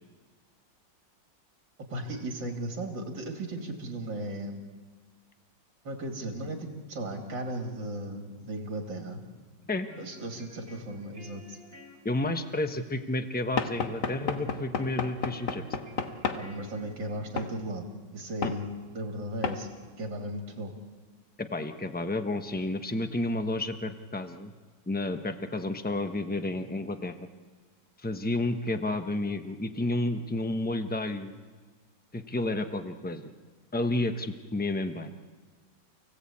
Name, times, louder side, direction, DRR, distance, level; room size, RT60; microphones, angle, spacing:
voice 1, 1.9-4.7 5.8-9.2 10.0-11.6 16.3-17.8 18.1-18.6 18.9-19.7 20.0-20.7, right 1 dB, 65° right, 2 dB, 3.3 m, -36 dB
sound 1, 9.6-17.6, equal, 30° right, 3.3 m, -53 dB
voice 2, 12.0-15.6 18.4-18.5 21.4-24.5 24.9-27.1 28.0-31.3 32.1-33.3 33.7-35.1, left 2 dB, 10° left, 7 dB, 0.6 m, -31 dB
Knock / Wood, 13.6-16.5 17.4-17.5 18.4-18.6 19.4-19.6, left 5 dB, 60° left, 1.9 m, -32 dB
29.0 x 17.0 x 8.6 m, 1.4 s
omnidirectional pair, 2.1 m